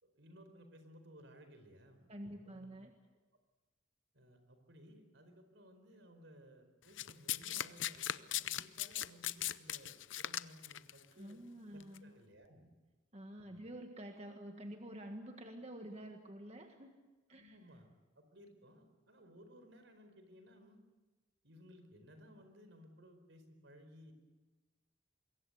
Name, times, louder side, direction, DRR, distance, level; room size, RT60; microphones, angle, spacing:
voice 1, 0.0-2.1 2.4-2.8 4.1-11.4 11.7-12.7 13.4-13.7 17.3-20.8 21.4-24.1, equal, 75° right, 7 dB, 4.7 m, -59 dB
voice 2, 2.1-2.9 11.2-12.1 13.1-16.9 17.3-17.6, right 1 dB, 35° right, 4 dB, 1.7 m, -49 dB
Domestic sounds home sounds, 7.0-10.9 11.8-12.0, left 12 dB, 80° left, 0.7 m, -38 dB
25.0 x 22.5 x 8.1 m, 1.2 s
head